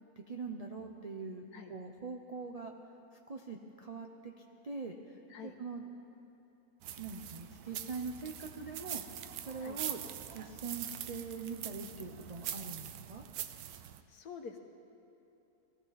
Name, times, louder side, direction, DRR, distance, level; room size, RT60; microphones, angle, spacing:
voice 1, 0.2-2.7 3.3-4.3 4.6-5.8 7.0-9.0 9.4-10.0 10.3-13.2, right 4 dB, 50° right, 1 dB, 0.4 m, -43 dB
sound 1, 6.8-14.0, right 11 dB, 80° right, 1.1 m, -43 dB
voice 2, 14.1-14.6, left 6 dB, 80° left, 5 dB, 1.5 m, -47 dB
19.0 x 14.0 x 4.2 m, 2.9 s
omnidirectional pair, 1.6 m